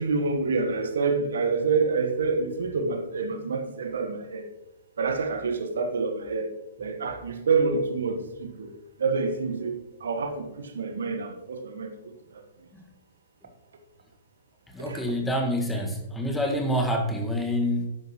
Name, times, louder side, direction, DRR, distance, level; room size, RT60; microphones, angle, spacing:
voice 1, 0.0-4.5 5.0-6.5 6.8-8.7 9.0-11.9 12.3-12.4 14.8-15.0, right 4 dB, 65° right, 1.4 m, -27 dB
voice 2, 14.7-17.9, equal, 5° left, 1.7 m, -27 dB
12.5 x 10.5 x 3.1 m
figure-of-eight pair, 110°, 0 cm